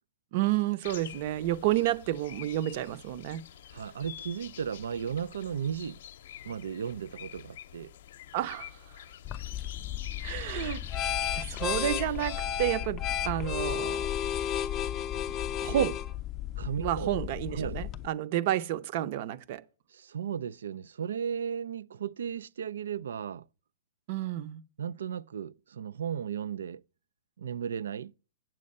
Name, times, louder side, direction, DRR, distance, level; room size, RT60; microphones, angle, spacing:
voice 1, 0.3-3.4 8.3-8.8 10.2-14.1 15.6-16.0 16.8-19.6 24.1-24.6, right 13 dB, 40° right, 0.6 m, -30 dB
sound 1, 0.8-12.4, left 11 dB, 60° left, 0.7 m, -47 dB
voice 2, 3.7-6.0 6.4-7.9 16.6-17.2 17.5-17.8 19.9-23.4 24.8-26.8 27.4-28.1, right 8 dB, 90° right, 0.4 m, -35 dB
sound 2, 9.2-18.1, left 11 dB, 20° left, 0.5 m, -33 dB
8.5 x 7.6 x 5.4 m
hypercardioid pair, 165°, 0 cm